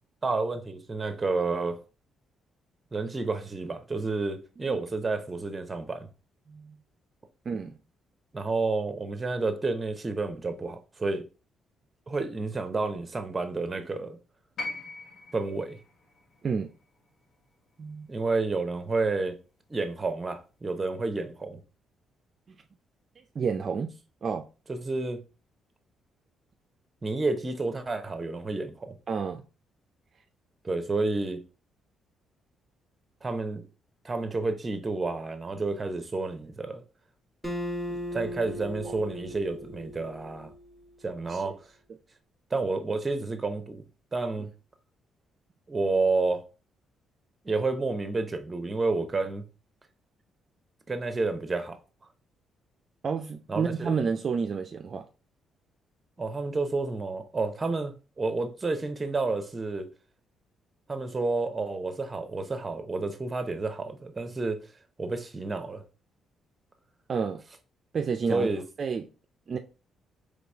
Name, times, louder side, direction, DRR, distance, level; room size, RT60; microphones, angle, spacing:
voice 1, 0.2-1.8 2.9-6.1 8.3-11.2 12.1-14.2 15.3-15.8 18.1-19.4 19.7-21.6 24.7-25.2 27.0-29.0 30.6-31.4 33.2-33.6 34.0-36.8 37.9-40.5 41.0-41.6 42.5-43.8 44.1-44.5 45.7-46.4 47.4-49.5 50.9-51.8 53.5-53.9 56.2-59.9 60.9-64.7 65.0-65.8 68.3-68.6, right 3 dB, 25° right, 0.8 m, -30 dB
voice 2, 7.5-7.8 16.4-16.7 17.8-18.1 23.4-23.9 24.2-24.5 29.1-29.4 38.8-38.9 41.3-41.5 53.0-55.1 67.1-67.4 67.9-68.5 68.8-69.1 69.5-69.6, right 5 dB, 45° right, 0.4 m, -30 dB
sound 1, 14.6-18.7 19.9-20.0, left 2 dB, 60° left, 1.4 m, -42 dB
Acoustic guitar, 37.4-40.8, left 1 dB, 15° left, 1.1 m, -37 dB
4.0 x 3.2 x 3.4 m
cardioid pair, 90°, 0 cm